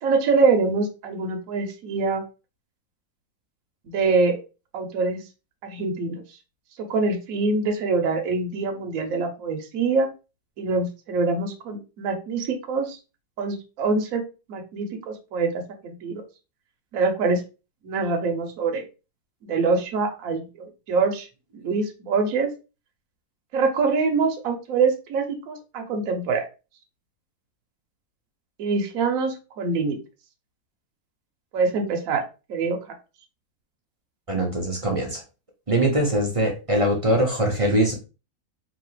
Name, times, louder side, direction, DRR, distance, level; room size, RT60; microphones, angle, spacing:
voice 1, 0.0-2.2 3.8-4.4 4.7-5.2 5.6-6.2 6.8-10.1 10.6-13.0 13.4-14.2 14.5-16.2 16.9-17.4 17.8-18.8 19.4-21.3 21.5-22.5 23.5-26.4 28.6-30.0 31.5-32.2 32.5-32.8, right 4 dB, 65° right, 4 dB, 1.1 m, -24 dB
voice 2, 34.3-35.2 35.7-38.0, right 1 dB, 35° right, 0 dB, 0.6 m, -22 dB
4.0 x 2.8 x 3.1 m, 0.30 s
omnidirectional pair, 1.6 m